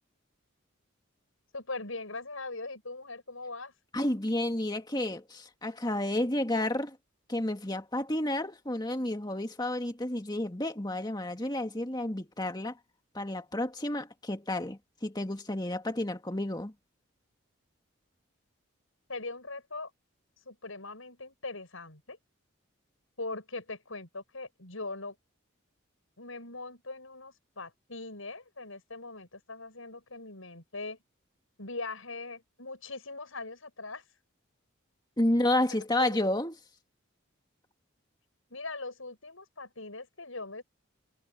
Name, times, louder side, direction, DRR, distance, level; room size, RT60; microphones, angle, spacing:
voice 1, 1.5-3.7 19.1-19.9 20.4-22.2 23.2-25.2 26.2-31.0 31.6-34.0 35.5-36.2 38.5-40.6, left 3 dB, 80° left, 6.5 m, -41 dB
voice 2, 3.9-7.0 7.3-12.7 13.1-16.7 35.2-36.5, left 1 dB, 20° left, 2.1 m, -31 dB
head